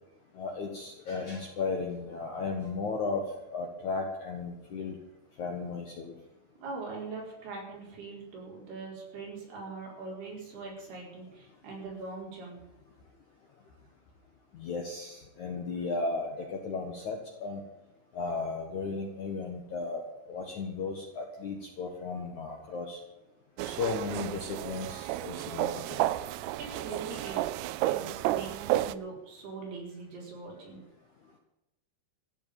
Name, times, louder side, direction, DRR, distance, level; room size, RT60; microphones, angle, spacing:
voice 1, 0.4-3.2 3.5-5.0 5.4-6.1 14.6-17.6 18.1-20.0 20.3-23.0 23.6-26.1, left 4 dB, 55° left, 2 dB, 2.3 m, -35 dB
voice 2, 6.6-12.6 26.6-27.4 27.7-30.8, right 4 dB, 55° right, -2 dB, 6.5 m, -42 dB
sound 1, 23.6-28.9, right 15 dB, 85° right, 2.3 m, -32 dB
14.5 x 8.3 x 9.0 m, 0.98 s
omnidirectional pair, 5.4 m